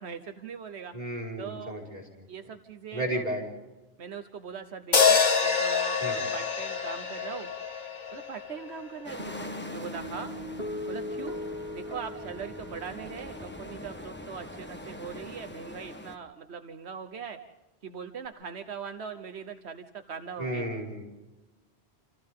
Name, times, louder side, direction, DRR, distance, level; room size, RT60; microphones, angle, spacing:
voice 1, 0.0-0.9 1.4-1.7 2.3-3.2 4.0-7.5 8.1-9.4 9.7-10.3 10.9-11.4 11.7-17.4 17.8-20.7, right 6 dB, 85° right, 7 dB, 1.3 m, -41 dB
voice 2, 0.9-2.3 2.9-3.5 6.0-6.2 20.4-21.0, right 1 dB, 40° right, -2 dB, 5.5 m, -33 dB
sound 1, 4.9-9.2, left 5 dB, 45° left, 1.6 m, -26 dB
sound 2, 9.0-16.2, left 1 dB, 10° left, 1.2 m, -43 dB
sound 3, 9.2-15.8, left 1 dB, 65° right, 3.4 m, -40 dB
28.0 x 27.5 x 3.8 m, 1.1 s
omnidirectional pair, 1.1 m